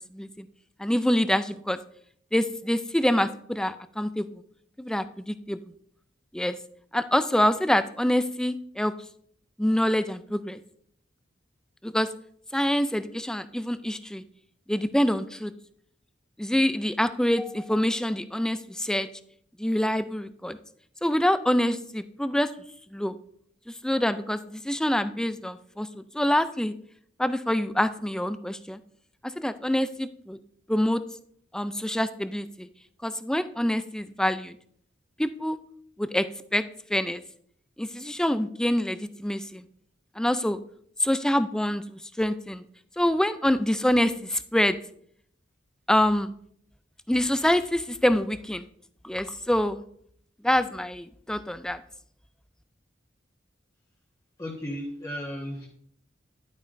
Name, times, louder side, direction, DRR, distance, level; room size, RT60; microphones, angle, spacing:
voice 1, 0.1-0.5 0.8-1.8 2.3-4.4 4.8-5.6 6.3-6.6 6.9-8.9 9.6-10.6 11.8-12.1 12.5-14.2 14.7-15.5 16.4-19.1 19.6-20.6 21.0-22.5 22.9-23.2 23.7-26.7 27.2-28.8 29.2-30.4 30.7-31.0 31.5-32.7 33.0-34.6 35.2-35.6 36.0-36.3 36.5-36.6 36.9-37.2 37.8-39.7 40.2-40.6 41.0-42.6 43.0-44.8 45.9-46.3 47.1-48.7 49.0-49.8 50.4-51.8, left 1 dB, 5° left, 12 dB, 0.3 m, -26 dB
voice 2, 54.4-55.7, equal, 20° left, -3 dB, 1.3 m, -35 dB
10.5 x 8.9 x 2.6 m, 0.66 s
head